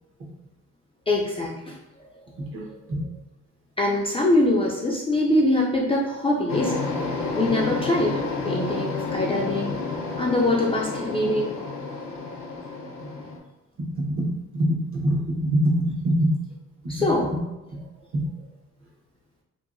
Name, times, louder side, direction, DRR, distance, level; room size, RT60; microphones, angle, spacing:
voice 1, 1.1-2.1 2.7-2.8 3.8-6.8 7.3-9.7 10.2-11.5 16.9-17.3, left 1 dB, 20° left, -3 dB, 0.4 m, -23 dB
voice 2, 2.4-3.0 13.8-14.3 14.5-16.3 16.8-16.9 18.1-18.2, right 1 dB, 45° right, -3 dB, 1.0 m, -24 dB
sound 1, 6.5-13.4, left 3 dB, 70° left, 0.6 m, -30 dB
2.7 x 2.3 x 2.5 m, 0.98 s
cardioid pair, 90°, 30 cm